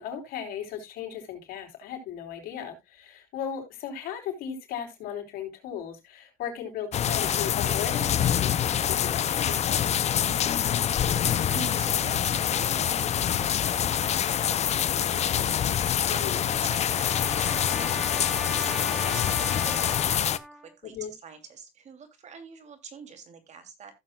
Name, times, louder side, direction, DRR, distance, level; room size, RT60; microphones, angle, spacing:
voice 1, 0.0-9.9 16.1-16.4 19.0-19.4 20.8-21.1, left 8 dB, 90° left, 3.9 m, -37 dB
sound 1, 6.9-20.4, left 9 dB, 50° left, 0.6 m, -26 dB
voice 2, 10.2-17.8 18.5-21.0 21.2-23.9, right 6 dB, 50° right, 2.7 m, -45 dB
Trumpet, 15.9-20.7, equal, ahead, 1.5 m, -39 dB
15.5 x 7.4 x 2.3 m
cardioid pair, 110°, 15 cm